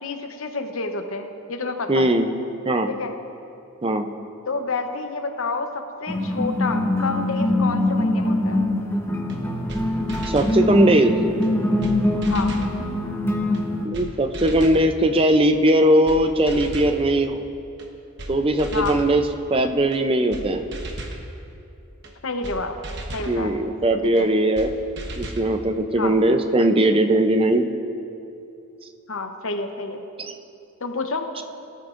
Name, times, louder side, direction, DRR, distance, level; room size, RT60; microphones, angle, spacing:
voice 1, 0.0-2.1 2.9-3.1 4.5-8.6 12.3-12.5 18.7-19.0 22.2-22.7 23.1-23.5 24.1-24.3 26.0-26.1 29.1-30.0 30.8-31.2, left 3 dB, 65° left, 6 dB, 0.9 m, -29 dB
voice 2, 1.9-2.3 2.7-2.9 3.8-4.1 10.3-11.2 13.8-17.4 18.3-19.2 19.5-20.7 23.2-24.7 25.2-27.7 30.2-30.3 31.4-31.5, right 1 dB, 25° right, 7 dB, 0.5 m, -19 dB
sound 1, 6.1-13.9, left 1 dB, 10° left, 0.9 m, -23 dB
sound 2, 9.3-9.4 9.7-9.8 10.1-10.6 11.4-11.5 11.8-12.0 12.2-12.7 13.5-13.6 13.9-14.1 14.3-14.8 15.7-15.8 16.1-16.2 16.5-17.0 17.8-17.9 18.2-18.3 18.6-19.1 19.9-20.0 20.3-20.4 20.7-21.2 22.0-22.1 22.4-22.6 22.8-23.3 24.2-24.3 24.6-24.7 25.0-25.5, right 1 dB, 55° right, 1.2 m, -34 dB
19.0 x 13.0 x 2.6 m, 2.7 s
head